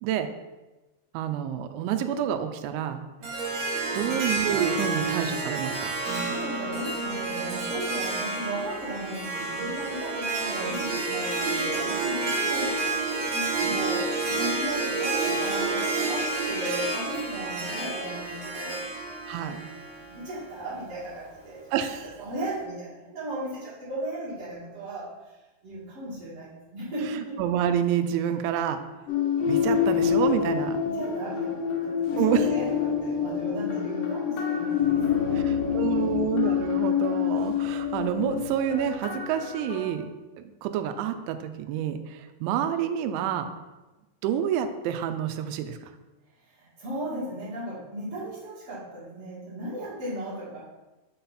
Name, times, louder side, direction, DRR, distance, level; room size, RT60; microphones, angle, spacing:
voice 1, 1.1-3.0 3.9-5.9 16.6-16.7 19.3-19.6 21.7-22.1 27.4-28.8 29.5-30.8 32.2-32.4 35.5-40.1 40.6-43.5 44.2-45.8, right 9 dB, 85° right, 8 dB, 2.9 m, -28 dB
Harp, 3.2-20.5, right 3 dB, 65° right, 1.7 m, -29 dB
voice 2, 3.9-4.2 6.0-18.9 19.8-21.6 22.0-25.4 25.6-27.4 30.8-36.2 46.5-50.6, right 1 dB, 45° right, -8 dB, 2.1 m, -36 dB
sound 1, 29.1-39.9, left 8 dB, 85° left, 1.8 m, -27 dB
6.7 x 4.2 x 5.6 m, 1.1 s
omnidirectional pair, 5.5 m